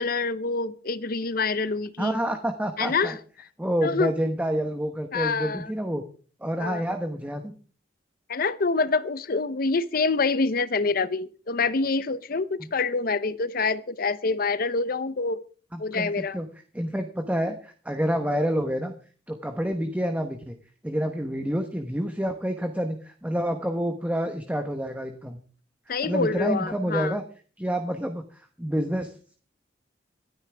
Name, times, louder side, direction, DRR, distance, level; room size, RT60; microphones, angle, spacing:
voice 1, 0.0-2.2 2.8-3.2 3.8-4.1 5.1-5.7 6.6-6.8 8.3-15.4 15.8-16.4 25.9-27.2, left 4 dB, 50° left, 0.7 m, -26 dB
voice 2, 2.0-3.2 3.6-6.0 6.4-7.6 15.7-16.5 16.7-18.9 19.3-20.6 20.8-25.4 26.0-27.2 27.6-29.4, equal, 10° right, 1.0 m, -28 dB
25.0 x 9.7 x 3.4 m
head